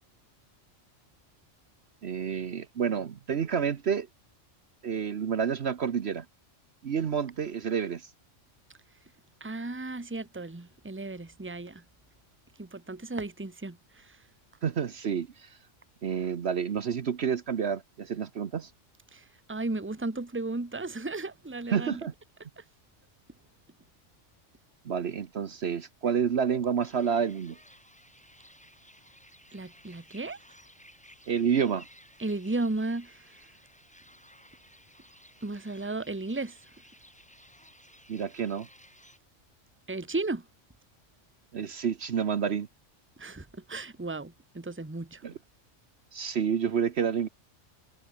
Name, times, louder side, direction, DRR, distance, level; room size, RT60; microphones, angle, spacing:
voice 1, 2.0-4.1 4.8-6.3 6.8-8.1 14.6-15.6 16.0-18.7 21.7-22.1 24.8-27.6 31.3-31.9 38.1-38.7 41.5-42.7 45.2-45.3 46.1-47.3, right 7 dB, 60° right, 1.2 m, -29 dB
voice 2, 9.4-11.8 12.6-14.2 19.1-22.0 22.6-22.7 29.5-30.4 32.2-33.3 35.4-36.6 39.9-40.4 43.2-45.2, right 2 dB, 10° right, 1.2 m, -35 dB
sound 1, 26.8-39.2, equal, 5° left, 2.9 m, -56 dB
omnidirectional pair, 1.3 m